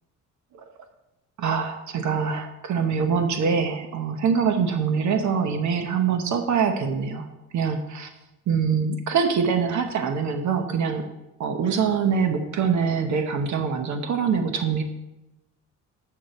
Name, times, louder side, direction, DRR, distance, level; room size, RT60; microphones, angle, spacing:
voice 1, 1.4-7.3 7.5-8.1 8.5-11.0 11.4-14.8, right 6 dB, 70° right, 6 dB, 1.1 m, -24 dB
8.7 x 7.8 x 4.3 m, 0.96 s
cardioid pair, 90°, 30 cm